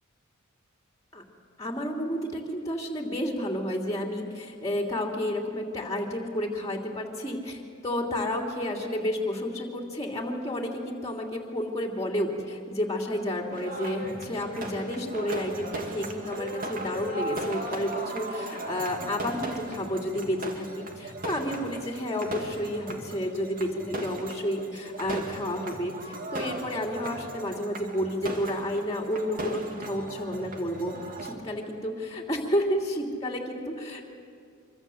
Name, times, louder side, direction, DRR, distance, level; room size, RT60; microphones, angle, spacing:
voice 1, 1.6-30.9 31.2-34.1, equal, 15° left, 1 dB, 3.0 m, -31 dB
sound 1, 13.5-31.3, right 2 dB, 40° right, 2.6 m, -37 dB
25.5 x 25.0 x 7.9 m, 2.3 s
head